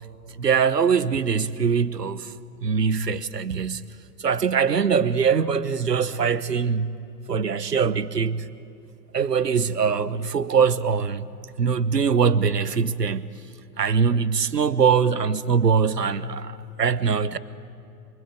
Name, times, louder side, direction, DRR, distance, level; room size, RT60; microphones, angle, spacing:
voice 1, 0.4-2.3 2.6-3.9 4.2-6.9 7.3-8.5 9.1-11.2 11.6-13.3 13.8-17.4, right 6 dB, 80° right, 1.1 m, -22 dB
28.0 x 24.5 x 7.8 m
figure-of-eight pair, 105°, 48 cm